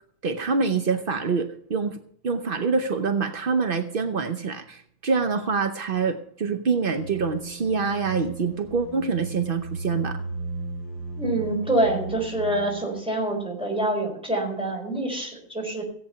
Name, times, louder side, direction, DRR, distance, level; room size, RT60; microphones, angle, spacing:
voice 1, 0.2-2.0 2.2-10.2, right 5 dB, 65° right, 7 dB, 0.5 m, -25 dB
sound 1, 7.0-12.9, right 3 dB, 40° left, 6.5 m, -36 dB
voice 2, 11.2-15.8, right 1 dB, 5° right, 0 dB, 4.0 m, -26 dB
16.5 x 8.7 x 5.7 m, 0.64 s
omnidirectional pair, 2.1 m